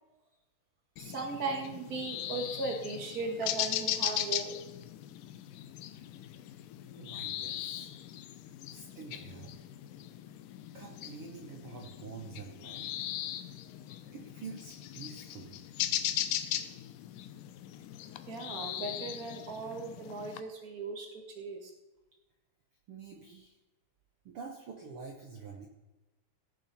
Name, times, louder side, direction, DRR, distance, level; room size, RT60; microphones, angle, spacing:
sound 1, 1.0-20.4, left 12 dB, 80° left, 2.1 m, -39 dB
voice 1, 1.0-4.6 18.3-21.1 21.3-21.7, right 3 dB, 35° right, 2 dB, 1.5 m, -37 dB
voice 2, 7.0-7.9 8.7-9.5 10.7-12.9 14.1-15.5 22.9-23.5 24.2-25.7, right 5 dB, 80° right, 1 dB, 1.2 m, -47 dB
17.0 x 6.8 x 4.2 m, 1.1 s
omnidirectional pair, 4.2 m